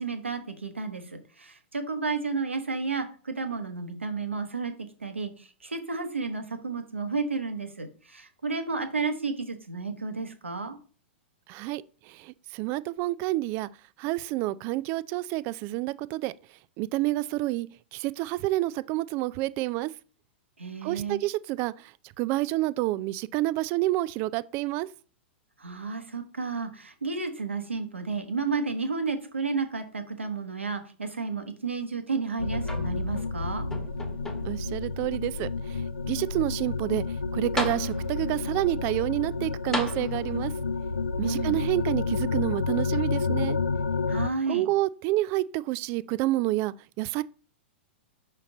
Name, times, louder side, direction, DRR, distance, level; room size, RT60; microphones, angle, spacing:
voice 1, 0.0-4.7 5.0-10.8 20.6-21.2 25.6-33.7 41.2-41.6 44.1-44.7, right 4 dB, 85° right, 1.2 m, -32 dB
voice 2, 11.5-13.7 14.0-16.3 16.8-19.9 20.8-24.9 34.4-35.8 36.1-37.0 37.3-40.5 41.2-43.6 44.5-47.2, right 17 dB, 35° right, 0.3 m, -29 dB
sound 1, 32.4-44.3, left 4 dB, 90° left, 0.4 m, -30 dB
sound 2, 32.6-33.3 33.7-34.7 35.4-35.5 37.1-37.2 37.6-38.3 39.7-40.6 41.6-41.7, left 1 dB, 5° left, 1.4 m, -35 dB
5.7 x 4.4 x 3.8 m
figure-of-eight pair, 105°, 6 cm